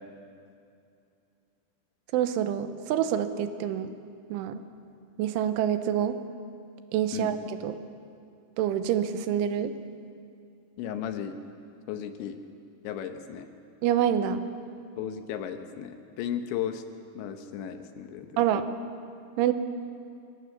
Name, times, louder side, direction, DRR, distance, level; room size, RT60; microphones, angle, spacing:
voice 1, 2.1-3.9 4.3-4.6 5.2-6.2 6.9-7.8 8.6-9.7 13.8-14.4 18.4-18.7 19.4-19.5, right 10 dB, 90° right, 10 dB, 3.4 m, -26 dB
voice 2, 10.8-11.4 11.9-12.4 12.8-13.5 15.0-16.8 17.2-18.5, left 9 dB, 75° left, 8 dB, 3.3 m, -35 dB
25.5 x 17.5 x 7.2 m, 2.5 s
omnidirectional pair, 5.5 m